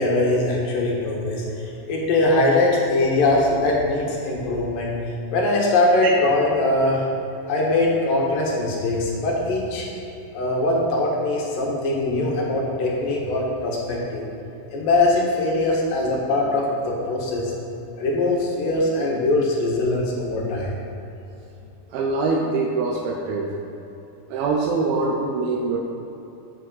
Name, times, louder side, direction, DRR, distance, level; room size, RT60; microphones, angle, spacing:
voice 1, 0.0-4.9 5.3-7.0 7.5-9.9 10.3-14.3 14.7-17.5 18.0-20.7, left 2 dB, 70° left, -3 dB, 3.1 m, -22 dB
voice 2, 21.9-23.5 24.3-25.8, right 3 dB, 85° right, -2 dB, 2.7 m, -23 dB
8.4 x 7.7 x 5.6 m, 2.8 s
omnidirectional pair, 4.3 m